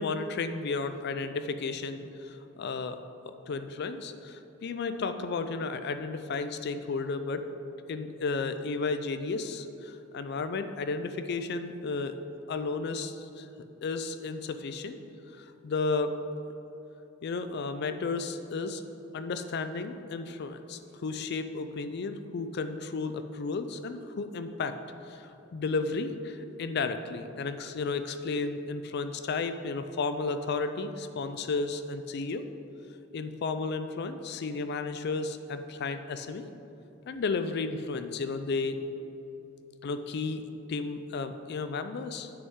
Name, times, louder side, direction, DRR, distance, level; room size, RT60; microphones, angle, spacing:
voice 1, 0.0-3.0 3.5-7.4 7.9-12.1 12.5-13.5 13.8-15.0 15.4-16.2 17.2-18.8 19.1-24.8 25.1-32.4 33.1-36.4 37.1-38.8 39.8-42.3, left 4 dB, 55° left, 9 dB, 0.4 m, -33 dB
8.0 x 6.3 x 3.7 m, 3.0 s
head